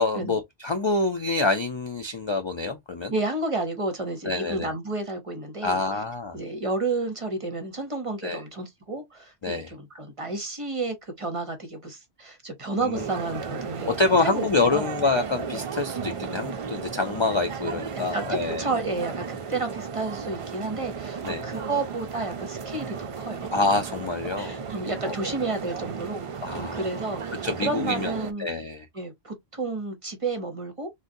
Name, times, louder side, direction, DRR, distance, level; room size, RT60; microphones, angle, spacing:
voice 1, 0.0-3.1 4.3-4.7 5.6-6.4 8.2-8.4 9.4-9.7 12.8-13.0 13.9-18.7 21.2-21.4 23.5-24.6 25.0-25.2 26.4-26.9 27.4-28.1 28.4-28.8, left 3 dB, 45° left, 0.3 m, -26 dB
voice 2, 3.1-5.8 6.3-13.9 14.2-14.9 17.6-18.2 18.6-23.5 24.4-28.5 28.9-30.9, right 3 dB, 35° right, 0.7 m, -31 dB
sound 1, 12.9-28.3, right 6 dB, 60° right, 0.3 m, -35 dB
3.8 x 2.2 x 2.6 m
omnidirectional pair, 1.1 m